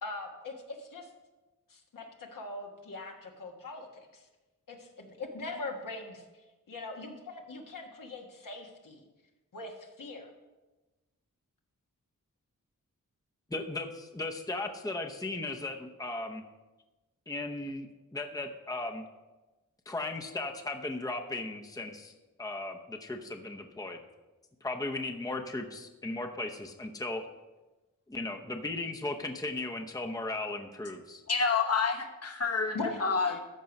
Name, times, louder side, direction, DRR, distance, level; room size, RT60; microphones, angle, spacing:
voice 1, 0.0-1.1 1.7-4.2 4.7-6.2 6.7-9.0 9.5-10.3 32.7-33.4, left 3 dB, 75° left, 1 dB, 1.4 m, -41 dB
voice 2, 13.5-16.4 17.3-19.0 19.9-24.0 24.6-27.2 28.1-31.2, left 2 dB, 10° left, 4 dB, 0.8 m, -36 dB
voice 3, 31.3-33.3, left 5 dB, 50° left, 5 dB, 1.2 m, -28 dB
13.0 x 4.6 x 5.3 m, 1.1 s
cardioid pair, 60°, 33 cm